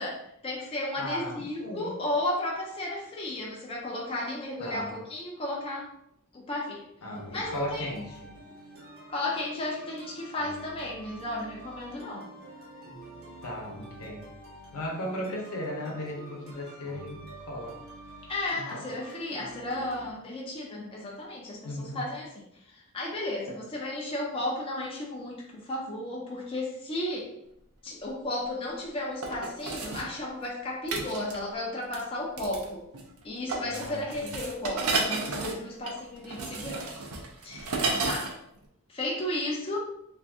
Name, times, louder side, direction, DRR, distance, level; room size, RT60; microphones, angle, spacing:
voice 1, 0.0-5.9 6.3-6.9 7.3-7.9 9.1-12.3 18.3-22.3 22.7-27.3 27.8-32.9 33.2-36.9 37.4-38.3 38.9-39.8, left 1 dB, 25° left, -3 dB, 0.5 m, -34 dB
voice 2, 1.0-2.0 4.6-4.9 7.0-8.3 13.4-14.3 14.7-17.8 18.5-18.8 21.6-22.0 23.5-23.6 33.6-34.4 37.8-38.1, left 1 dB, 70° left, -1 dB, 0.8 m, -37 dB
sound 1, 7.1-20.1, right 1 dB, 45° right, 0.8 m, -47 dB
sound 2, 27.9-28.0 29.2-30.1 30.9-31.4 31.9-32.0 32.4-32.7 32.9-33.2 33.5-38.3 38.6-38.7, right 3 dB, 70° right, 0.6 m, -32 dB
2.5 x 2.5 x 3.4 m, 0.75 s
head